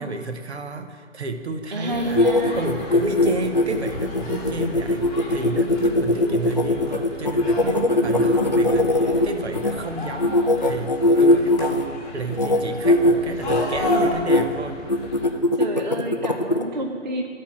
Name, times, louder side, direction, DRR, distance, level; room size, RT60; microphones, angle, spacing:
voice 1, 0.0-2.3 2.6-11.9 12.1-14.8, right 3 dB, 60° right, 7 dB, 0.9 m, -31 dB
voice 2, 1.7-2.7 7.6-8.7 15.5-17.3, right 1 dB, 35° right, 3 dB, 0.4 m, -30 dB
sound 1, 1.9-9.7 10.2-11.9 12.3-12.6 12.8-13.1 13.5-14.4 14.9-16.6, left 1 dB, 35° left, 0.4 m, -20 dB
sound 2, 1.9-15.3, left 1 dB, 10° left, 1.4 m, -35 dB
12.0 x 4.4 x 6.1 m, 2.1 s
figure-of-eight pair, 150°, 38 cm